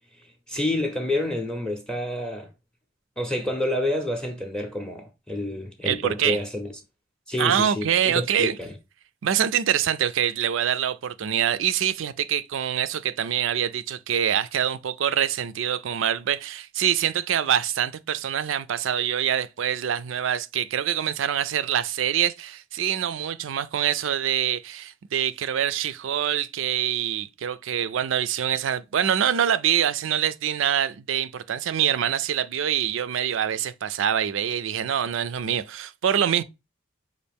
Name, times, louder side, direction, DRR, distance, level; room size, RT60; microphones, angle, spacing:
voice 1, 0.5-2.5 3.2-6.7 7.3-8.7, left 1 dB, 5° left, 0.6 m, -28 dB
voice 2, 5.9-6.4 7.4-8.6 9.2-36.4, right 9 dB, 70° right, 0.4 m, -25 dB
5.2 x 2.5 x 3.4 m
head